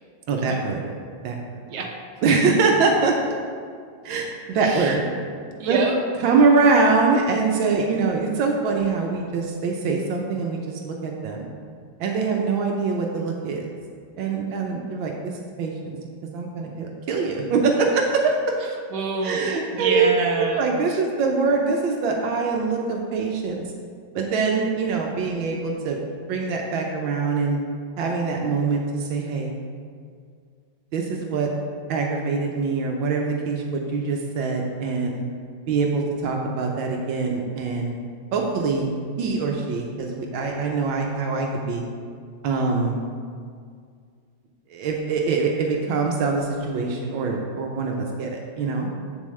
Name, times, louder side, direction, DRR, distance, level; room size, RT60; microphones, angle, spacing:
voice 1, 0.3-0.8 1.2-1.4 2.2-3.1 4.0-5.1 5.6-5.8 6.2-11.5 12.0-13.7 14.2-16.0 16.3-18.2 19.2-20.1 20.6-23.6 24.1-26.0 26.3-27.6 28.0-29.5 30.9-31.5 31.9-35.2 35.7-38.0 38.3-41.8 42.4-43.0 44.7-48.9, right 4 dB, 80° right, 1 dB, 1.5 m, -23 dB
voice 2, 4.6-5.0 5.6-6.0 18.6-21.0, right 4 dB, 65° right, 0 dB, 1.5 m, -28 dB
8.4 x 7.1 x 3.2 m, 2.1 s
omnidirectional pair, 2.1 m